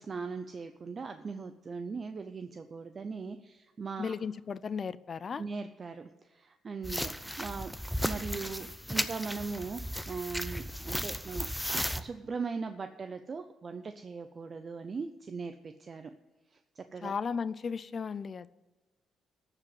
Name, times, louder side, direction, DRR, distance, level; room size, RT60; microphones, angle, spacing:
voice 1, 0.0-4.1 5.4-7.8 8.0-16.1 16.5-17.1, right 4 dB, 40° right, 9 dB, 0.6 m, -39 dB
voice 2, 4.0-5.4 17.0-18.5, left 6 dB, 45° left, 18 dB, 0.4 m, -35 dB
sound 1, 6.8-12.0, equal, ahead, 0.6 m, -35 dB
14.0 x 4.9 x 8.0 m, 1.2 s
cardioid pair, 90°, 0 cm